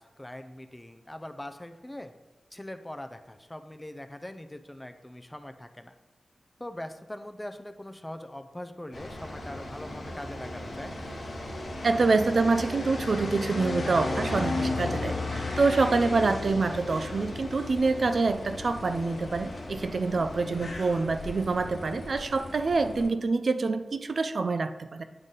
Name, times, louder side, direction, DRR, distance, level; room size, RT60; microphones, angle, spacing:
voice 1, 0.0-2.1 2.5-5.9 6.6-10.9 20.5-20.7, left 1 dB, 15° left, 8 dB, 0.4 m, -42 dB
sound 1, 8.9-23.1, left 2 dB, 85° left, 1.2 m, -35 dB
voice 2, 11.8-25.0, right 3 dB, 60° right, 9 dB, 0.4 m, -26 dB
9.0 x 3.9 x 3.8 m, 1.2 s
wide cardioid pair, 105°, 0 cm